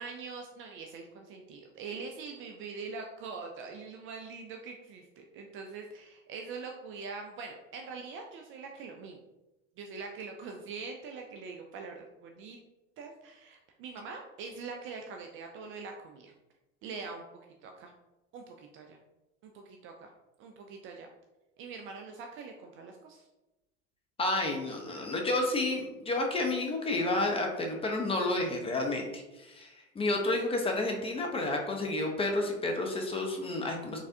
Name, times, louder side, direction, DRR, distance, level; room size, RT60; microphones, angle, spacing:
voice 1, 0.0-9.2 9.8-12.6 13.0-16.3 16.8-17.2 17.6-17.9 18.3-19.0 19.4-20.1 20.4-21.1 21.6-23.3, right 4 dB, 35° right, 3 dB, 0.4 m, -43 dB
voice 2, 24.2-34.0, left 2 dB, 15° left, 2 dB, 0.6 m, -30 dB
3.8 x 3.3 x 2.6 m, 1.0 s
hypercardioid pair, 95°, 39 cm